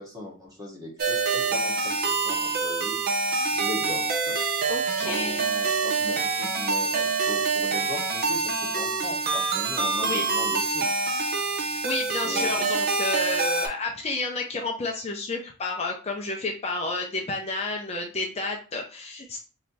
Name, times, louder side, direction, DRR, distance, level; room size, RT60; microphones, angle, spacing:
voice 1, 0.0-3.0 3.5-4.7 5.0-10.9 12.2-12.6, left 2 dB, 15° right, -2 dB, 1.3 m, -38 dB
sound 1, 1.0-13.7, right 4 dB, 45° right, 0.7 m, -26 dB
voice 2, 4.7-5.4 9.7-10.3 11.6-19.4, left 3 dB, 30° left, 1 dB, 0.6 m, -31 dB
3.2 x 2.8 x 4.0 m, 0.36 s
head